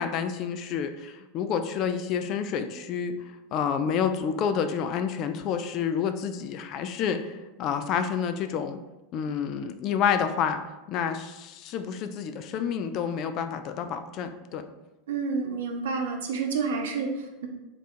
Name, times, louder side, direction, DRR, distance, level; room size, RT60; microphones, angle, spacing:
voice 1, 0.0-3.2 3.5-7.3 7.6-8.8 9.1-10.6 10.9-14.6, left 7 dB, 50° left, 9 dB, 0.4 m, -29 dB
voice 2, 15.1-17.5, right 5 dB, 80° right, 3 dB, 0.7 m, -29 dB
3.8 x 2.4 x 4.3 m, 1.0 s
hypercardioid pair, 100°, 0 cm